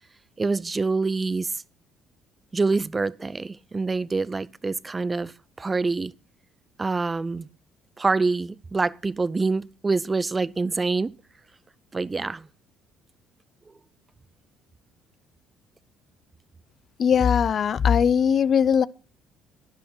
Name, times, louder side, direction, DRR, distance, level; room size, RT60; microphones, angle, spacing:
voice 1, 0.4-1.5 2.5-5.3 5.6-6.1 6.8-7.5 8.0-11.1 11.9-12.5, right 3 dB, 25° right, 0.6 m, -26 dB
voice 2, 17.0-18.9, left 7 dB, 50° left, 0.6 m, -20 dB
11.5 x 11.0 x 6.1 m
hypercardioid pair, 55°, 0 cm